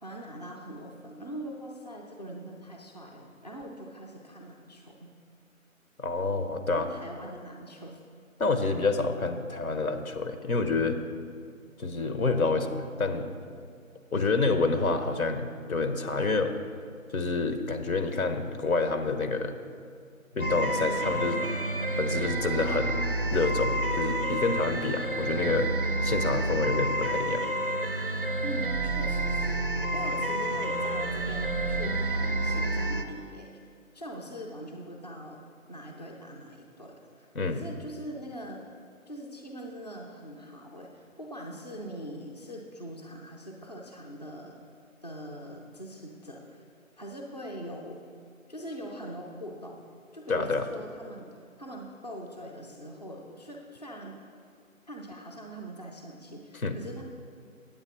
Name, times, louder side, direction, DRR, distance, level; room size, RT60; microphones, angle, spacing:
voice 1, 0.0-5.1 6.7-8.0 28.4-29.6 29.9-33.5 33.9-35.4 35.7-38.6 39.1-44.6 45.0-46.6 47.0-48.0 48.5-49.8 50.1-51.3 51.6-54.1 54.9-57.0, equal, 30° left, -1 dB, 0.5 m, -42 dB
voice 2, 6.0-6.9 8.4-11.0 11.8-13.3 14.1-16.5 17.1-19.5 20.3-21.4 22.0-23.0 23.3-25.7 26.0-27.4 37.3-37.6 50.3-50.6 56.6-56.8, left 3 dB, 80° left, 7 dB, 0.9 m, -28 dB
sound 1, 20.4-33.0, right 1 dB, 40° right, 0.4 m, -29 dB
8.8 x 8.1 x 4.2 m, 2.2 s
figure-of-eight pair, 165°, 42 cm